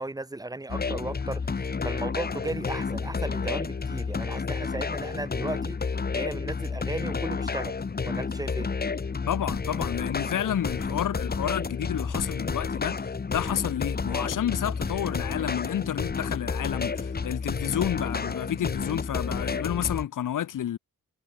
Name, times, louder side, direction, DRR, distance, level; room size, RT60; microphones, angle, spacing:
voice 1, 0.0-7.8 8.0-8.7, right 2 dB, 10° right, 5.1 m, -36 dB
sound 1, 0.7-20.0, left 5 dB, 30° left, 6.1 m, -30 dB
voice 2, 9.3-20.8, left 10 dB, 80° left, 2.1 m, -30 dB
wide cardioid pair, 175°, 31 cm